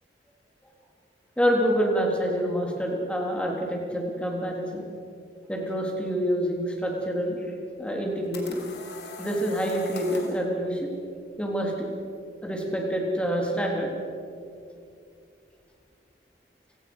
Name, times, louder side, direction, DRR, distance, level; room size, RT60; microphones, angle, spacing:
voice 1, 1.4-4.8 5.5-7.4 7.8-8.6 9.2-10.9 11.4-11.9 12.4-13.9, equal, 5° left, 0 dB, 3.6 m, -27 dB
sound 1, 7.9-10.4, left 3 dB, 65° left, 3.6 m, -41 dB
29.0 x 18.0 x 6.3 m, 2.5 s
head